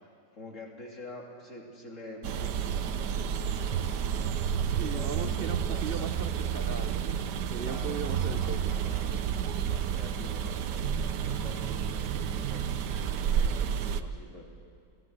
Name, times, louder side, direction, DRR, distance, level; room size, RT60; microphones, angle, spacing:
voice 1, 0.3-3.9 4.7-6.2 7.6-9.3 9.6-10.8 11.1-12.7 12.9-14.5, left 1 dB, 45° left, 0 dB, 3.5 m, -46 dB
sound 1, 2.2-14.0, right 8 dB, 75° right, 1.4 m, -30 dB
voice 2, 4.8-8.8, right 6 dB, 55° right, 9 dB, 0.6 m, -38 dB
28.0 x 17.0 x 8.0 m, 2.3 s
omnidirectional pair, 1.9 m